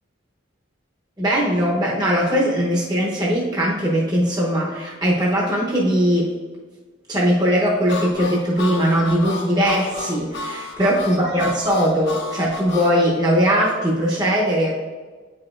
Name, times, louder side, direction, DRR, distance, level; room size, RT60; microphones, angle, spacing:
voice 1, 1.2-6.3 7.1-14.8, equal, 20° right, -4 dB, 0.8 m, -20 dB
Harmonica, 7.9-13.0, left 2 dB, 55° left, 0.8 m, -31 dB
9.0 x 5.0 x 2.4 m, 1.4 s
head